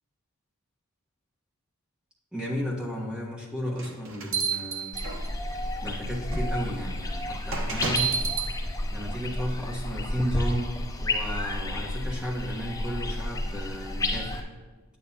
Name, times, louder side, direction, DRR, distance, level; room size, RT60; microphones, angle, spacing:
voice 1, 2.3-4.9 5.8-8.1 8.9-14.5, equal, 5° right, -4 dB, 1.2 m, -33 dB
sound 1, 3.8-5.5 6.3-6.4 7.5-8.5, right 5 dB, 65° right, 1.1 m, -29 dB
sound 2, 4.9-14.4, left 1 dB, 15° left, 0.5 m, -31 dB
9.2 x 9.1 x 2.8 m, 1.3 s
head